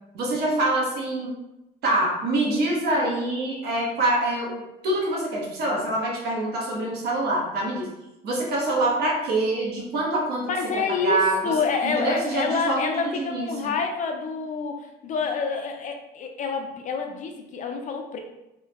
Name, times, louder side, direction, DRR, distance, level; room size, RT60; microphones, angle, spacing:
voice 1, 0.1-1.3 1.8-7.9 8.2-10.5 10.7-11.6 11.8-13.7, right 1 dB, 70° right, -2 dB, 1.0 m, -25 dB
voice 2, 10.4-18.2, left 5 dB, 50° left, 4 dB, 0.5 m, -28 dB
3.1 x 2.3 x 3.1 m, 0.91 s
cardioid pair, 110°, 17 cm